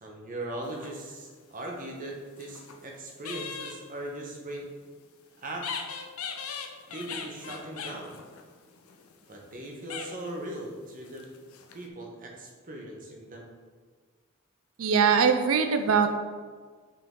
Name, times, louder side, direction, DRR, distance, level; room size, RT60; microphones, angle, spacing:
voice 1, 0.0-4.7 5.4-5.7 6.9-8.2 9.3-11.2 11.7-13.5, right 1 dB, 40° right, 1 dB, 1.0 m, -39 dB
sound 1, 0.6-1.4 2.1-2.9 3.2-3.8 5.6-9.6 9.9-10.4 11.0-11.9, left 6 dB, 85° left, 0.6 m, -40 dB
voice 2, 14.8-16.2, right 6 dB, 75° right, 7 dB, 0.4 m, -22 dB
5.3 x 5.3 x 3.7 m, 1.5 s
head